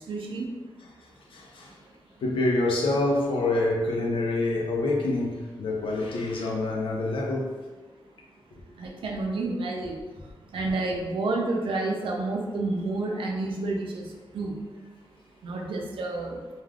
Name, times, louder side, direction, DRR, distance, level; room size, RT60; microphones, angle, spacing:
voice 1, 0.1-0.5 8.8-10.0 10.5-14.0 14.3-14.6 15.4-16.4, right 2 dB, 85° right, 0 dB, 0.5 m, -29 dB
voice 2, 1.3-1.7 2.2-7.5 8.5-8.6, left 2 dB, 90° left, -1 dB, 0.5 m, -26 dB
3.3 x 2.3 x 2.3 m, 1.3 s
wide cardioid pair, 125°, 9 cm